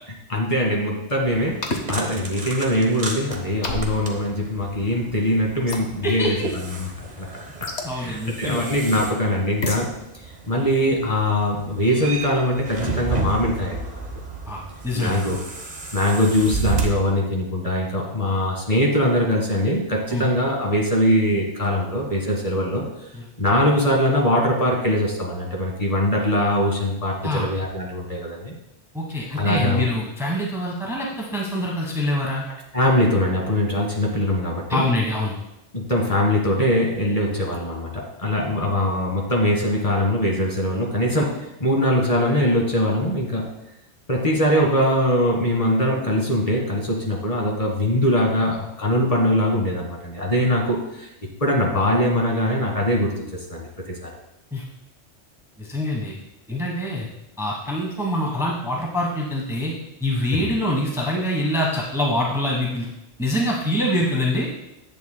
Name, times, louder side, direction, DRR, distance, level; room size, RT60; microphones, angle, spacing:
voice 1, 0.3-7.3 7.9-9.9 10.5-13.9 14.9-15.4 15.9-22.8 23.4-28.5 29.4-29.9 32.7-34.8 35.7-43.5 44.1-51.1 51.4-54.1 60.3-60.5, left 1 dB, 30° left, -2 dB, 1.8 m, -22 dB
sound 1, 1.3-16.9, right 4 dB, 35° right, 1.2 m, -33 dB
sound 2, 1.6-1.9 3.6-4.0 5.7-5.9 7.6-7.9 9.6-9.9, left 2 dB, 65° left, 1.3 m, -27 dB
voice 2, 6.0-6.5 7.8-8.7 14.5-15.2 20.1-20.3 27.2-27.5 28.9-32.4 34.7-35.3 54.5-54.6 55.6-56.2 56.5-57.1 57.4-59.7 60.0-62.9 63.2-64.5, left 1 dB, 5° right, -2 dB, 1.1 m, -25 dB
10.5 x 8.1 x 2.2 m, 0.87 s
omnidirectional pair, 1.2 m